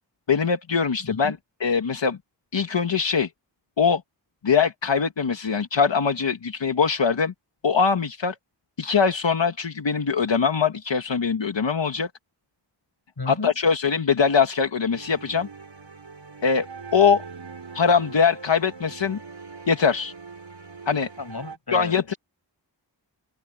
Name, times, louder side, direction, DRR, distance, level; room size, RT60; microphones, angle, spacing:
voice 1, 0.3-1.3 1.6-2.2 2.5-3.3 3.8-4.0 4.4-7.3 7.6-8.3 8.8-12.1 13.2-15.5 16.4-16.7 16.9-17.2 17.7-19.2 19.7-20.1 20.9-21.1 21.7-22.1, left 6 dB, 75° left, 1.6 m, -22 dB
voice 2, 1.0-1.4 13.2-13.5 21.2-22.2, left 3 dB, 55° left, 6.9 m, -34 dB
sound 1, 14.9-21.6, right 4 dB, 80° right, 6.0 m, -42 dB
wide cardioid pair, 55°, 44 cm